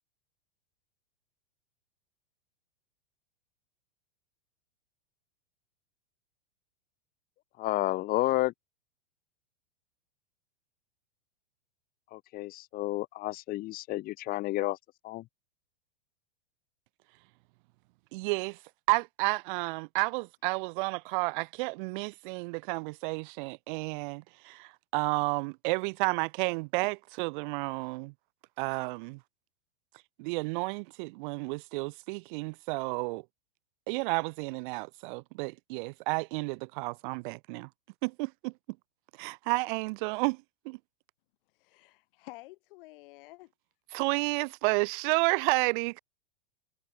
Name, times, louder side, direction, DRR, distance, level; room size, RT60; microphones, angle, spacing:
voice 1, 7.6-8.5 12.1-14.8 15.0-15.2, left 17 dB, 25° left, 0.9 m, -31 dB
voice 2, 18.1-18.6 18.9-28.1 28.6-29.2 30.2-33.2 33.9-37.7 38.0-38.5 39.2-40.8 43.9-46.0, right 27 dB, 50° right, 2.7 m, -31 dB
voice 3, 41.6-43.5 43.9-44.0, left 21 dB, 55° left, 7.9 m, -50 dB
supercardioid pair, 145°, 33 cm